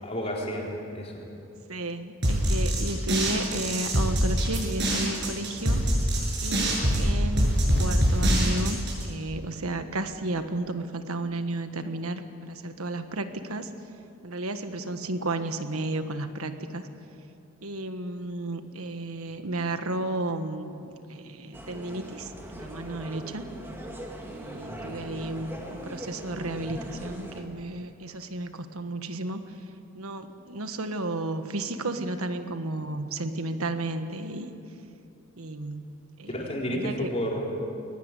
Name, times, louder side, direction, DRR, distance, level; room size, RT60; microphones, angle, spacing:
voice 1, 0.0-0.7 0.9-1.1 24.7-25.0 36.3-37.4, equal, 30° left, -2 dB, 4.1 m, -31 dB
voice 2, 1.7-5.8 6.4-7.5 7.8-13.7 14.2-16.9 17.6-23.4 24.2-29.4 29.9-34.5 35.4-35.9 36.2-37.1, right 2 dB, 85° right, 8 dB, 1.5 m, -33 dB
sound 1, 2.2-9.0, equal, 55° right, 7.2 m, -24 dB
sound 2, 21.5-27.4, right 1 dB, 10° right, 2.4 m, -40 dB
22.0 x 19.5 x 8.4 m, 2.7 s
head